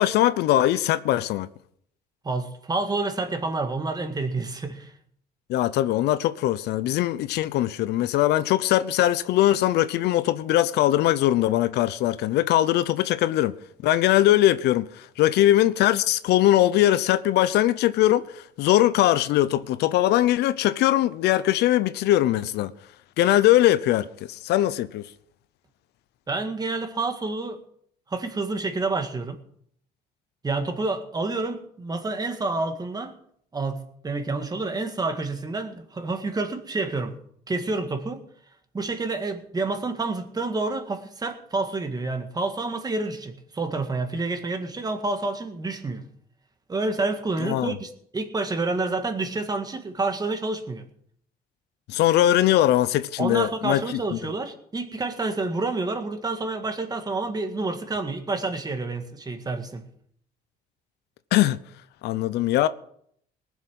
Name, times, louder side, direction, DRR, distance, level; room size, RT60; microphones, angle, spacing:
voice 1, 0.0-1.5 5.5-13.5 13.8-22.7 23.2-25.1 47.4-47.8 51.9-54.2 61.3-61.6 62.0-62.7, left 14 dB, 80° left, 0.7 m, -21 dB
voice 2, 2.2-4.9 26.3-27.6 28.1-29.4 30.4-33.2 33.5-37.1 37.5-38.2 38.7-46.1 46.7-50.9 53.2-59.8, right 3 dB, 25° right, 1.9 m, -28 dB
19.5 x 7.3 x 6.3 m
cardioid pair, 110°, 17 cm